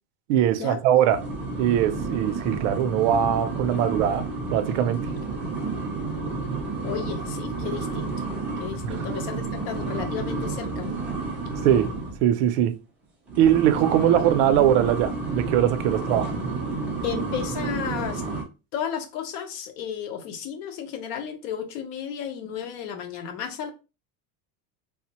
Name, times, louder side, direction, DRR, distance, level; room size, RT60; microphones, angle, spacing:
voice 1, 0.3-1.2 1.6-5.1 8.8-9.0 11.6-11.9 12.2-12.8 13.4-16.3, right 10 dB, 70° right, 0.5 m, -21 dB
sound 1, 1.1-12.2 13.3-18.4, right 3 dB, 5° right, 0.3 m, -30 dB
voice 2, 6.8-8.1 8.6-11.0 14.0-14.1 17.0-18.2 18.7-23.7, left 8 dB, 85° left, 0.8 m, -33 dB
3.3 x 2.1 x 2.8 m
cardioid pair, 180°, 43 cm